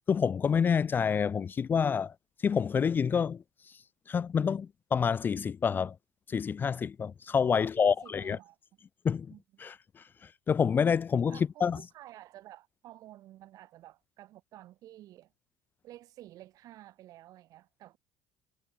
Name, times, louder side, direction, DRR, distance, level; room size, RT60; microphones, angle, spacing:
voice 1, 0.1-2.1 2.4-3.4 4.1-5.9 6.3-8.4 9.0-9.3 9.6-9.7 10.5-11.8, left 6 dB, 30° left, 0.4 m, -27 dB
voice 2, 7.5-8.6 9.3-9.4 11.3-15.3 15.8-18.0, right 14 dB, 60° right, 4.2 m, -52 dB
supercardioid pair, 105°, 7 cm